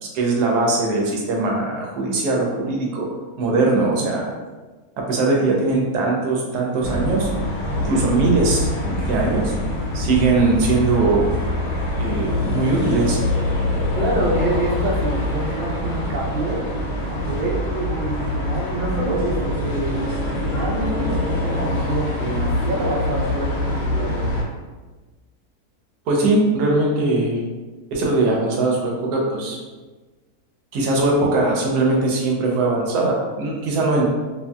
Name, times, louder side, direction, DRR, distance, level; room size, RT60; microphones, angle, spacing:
voice 1, 0.0-3.1 3.4-4.2 5.0-7.3 7.8-9.5 9.9-11.3 12.0-13.2 26.1-27.4 27.9-29.6 30.7-34.1, right 3 dB, 90° right, -1 dB, 1.2 m, -20 dB
sound 1, 6.8-24.4, left 1 dB, 75° left, 1.1 m, -24 dB
voice 2, 13.9-16.6 17.1-20.0 20.4-24.3, right 2 dB, 65° right, -3 dB, 0.5 m, -26 dB
2.6 x 2.6 x 2.2 m, 1.3 s
omnidirectional pair, 1.6 m